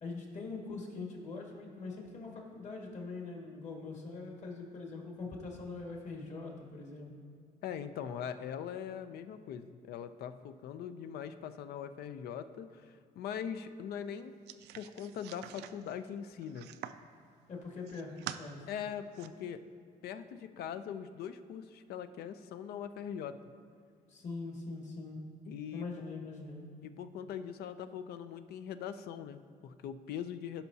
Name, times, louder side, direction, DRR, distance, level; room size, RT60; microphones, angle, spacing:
voice 1, 0.0-7.1 17.5-18.6 24.1-25.2 25.7-26.7, left 3 dB, 45° left, -1 dB, 1.9 m, -43 dB
voice 2, 7.6-14.4 14.8-16.7 18.7-19.6 20.0-23.4 25.5-25.9 26.8-30.6, left 8 dB, 70° left, 11 dB, 0.5 m, -41 dB
sound 1, 14.5-17.1 17.6-18.4 18.9-19.3, right 12 dB, 80° right, 0.4 m, -46 dB
15.5 x 5.6 x 2.7 m, 2.3 s
cardioid pair, 110°, 17 cm